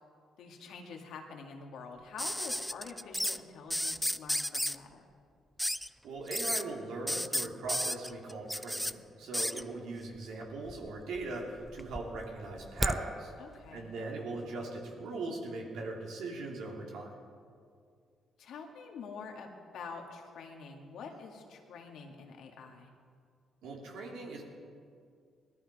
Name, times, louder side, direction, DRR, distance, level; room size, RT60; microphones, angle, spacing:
voice 1, 0.4-5.0 13.4-13.9 18.4-22.9, left 5 dB, 80° left, 2 dB, 2.1 m, -46 dB
sound 1, 2.2-3.4 3.7-4.8 5.6-5.9 6.3-6.6 7.1-8.9 9.3-9.6 10.7-11.2 11.6-13.0 14.3-14.4, equal, 5° left, 0.4 m, -33 dB
voice 2, 6.0-8.9 9.2-13.3 13.7-17.1 23.6-24.4, right 3 dB, 80° right, -1 dB, 3.2 m, -40 dB
19.0 x 13.5 x 5.0 m, 2.2 s
cardioid pair, 90°, 0 cm